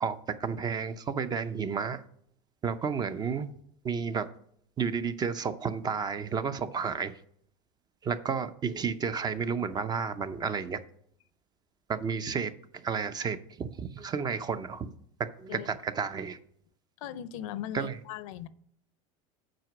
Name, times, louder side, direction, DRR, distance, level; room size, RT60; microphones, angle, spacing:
voice 1, 0.0-2.0 2.6-3.5 3.8-4.3 4.8-7.1 8.0-10.8 11.9-14.9 15.4-16.4 17.7-18.0, right 6 dB, 25° right, 0.5 m, -32 dB
voice 2, 17.0-18.5, left 11 dB, 85° left, 0.6 m, -38 dB
7.7 x 5.1 x 6.0 m
supercardioid pair, 135°, 17 cm